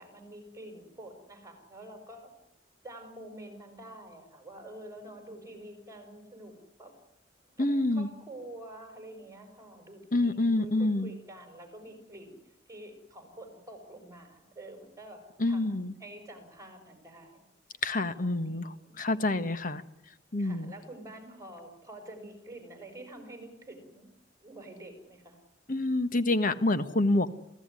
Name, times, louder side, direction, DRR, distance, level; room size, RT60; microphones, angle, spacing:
voice 1, 0.0-2.3 2.8-6.9 7.6-12.4 12.7-17.4 18.0-19.5 20.4-24.1 24.4-25.4, right 1 dB, 20° right, 6 dB, 6.0 m, -48 dB
voice 2, 7.6-8.1 10.1-11.1 15.4-15.9 17.8-19.8 20.3-20.7 25.7-27.3, left 2 dB, 45° left, 11 dB, 1.4 m, -27 dB
27.5 x 16.0 x 9.8 m, 0.84 s
head